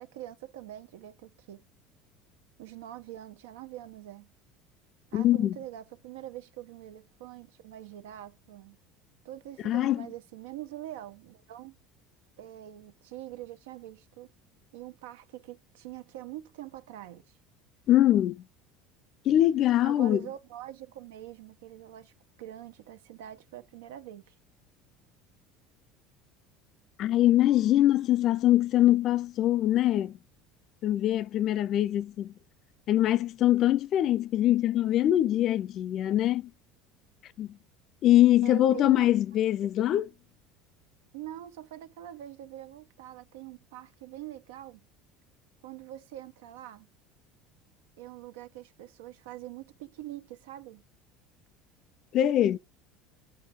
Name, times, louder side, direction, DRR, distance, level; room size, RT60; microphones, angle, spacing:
voice 1, 0.0-1.6 2.6-4.3 5.1-8.8 9.2-11.8 12.4-14.3 14.7-17.2 19.8-22.1 22.4-24.3 38.4-39.1 41.1-44.9 45.6-46.9 48.0-50.8, right 13 dB, 85° right, 0.8 m, -44 dB
voice 2, 5.1-5.6 9.6-10.1 17.9-18.4 19.3-20.2 27.0-30.2 30.8-32.3 32.9-36.5 37.4-37.5 38.0-40.1 52.1-52.6, left 13 dB, 50° left, 0.4 m, -23 dB
7.6 x 4.6 x 3.6 m
supercardioid pair, 100°, 0 cm